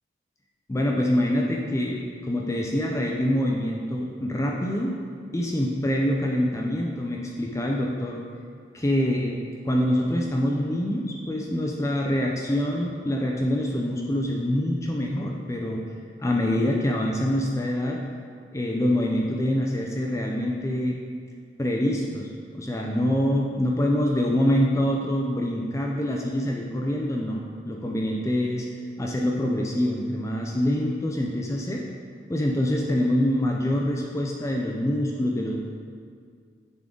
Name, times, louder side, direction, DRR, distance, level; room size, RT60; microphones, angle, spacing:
voice 1, 0.7-4.9 5.3-8.2 8.7-9.3 9.6-15.8 16.2-18.0 18.5-21.0 21.6-22.3 22.5-28.7 29.0-31.8 32.3-35.6, left 1 dB, 15° left, -1 dB, 0.4 m, -25 dB
9.2 x 3.8 x 3.7 m, 2.1 s
head